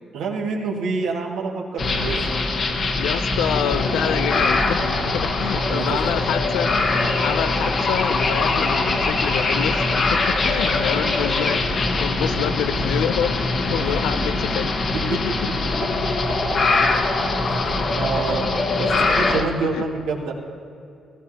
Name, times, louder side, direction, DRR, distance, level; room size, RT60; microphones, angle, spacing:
voice 1, 0.1-2.2 5.7-6.0 16.3-16.4 17.7-18.4 18.8-20.3, right 4 dB, 85° right, -1 dB, 2.0 m, -27 dB
sound 1, 1.8-19.4, left 3 dB, 55° left, 1.3 m, -22 dB
voice 2, 3.0-6.7 7.2-14.7 15.1-15.4 19.7-19.9, left 10 dB, 90° left, 13 dB, 0.4 m, -27 dB
16.5 x 16.0 x 2.9 m, 2.5 s
cardioid pair, 90°, 0 cm